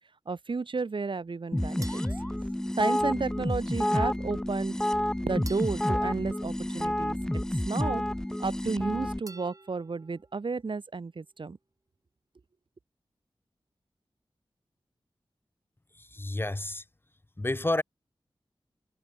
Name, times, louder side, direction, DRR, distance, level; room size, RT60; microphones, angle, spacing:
voice 1, 0.3-2.0 2.8-4.8 5.2-7.2 7.7-8.0 8.4-11.6, right 4 dB, 60° right, 1.2 m, -32 dB
sound 1, 1.5-9.2, left 1 dB, 5° left, 0.3 m, -29 dB
sound 2, 1.8-3.3 5.5-7.3 9.3-10.4, right 2 dB, 35° right, 6.5 m, -52 dB
Fireworks, 7.5-7.6, right 5 dB, 85° right, 3.9 m, -45 dB
voice 2, 15.9-16.8 17.4-17.8, left 2 dB, 25° left, 0.8 m, -30 dB
cardioid pair, 50°, 9 cm